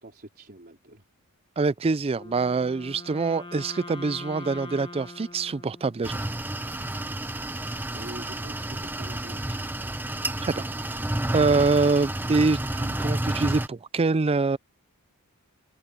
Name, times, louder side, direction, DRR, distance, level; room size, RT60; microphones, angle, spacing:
voice 1, 0.0-1.0 7.9-9.9, right 1 dB, 45° right, 4.2 m, -45 dB
voice 2, 1.6-6.2 10.4-10.7 11.3-14.6, right 3 dB, 25° right, 0.4 m, -25 dB
Wind instrument woodwind instrument, 2.1-6.4, left 2 dB, 25° left, 1.6 m, -42 dB
sound 1, 6.0-13.7, right 1 dB, 10° right, 0.8 m, -30 dB
open air
head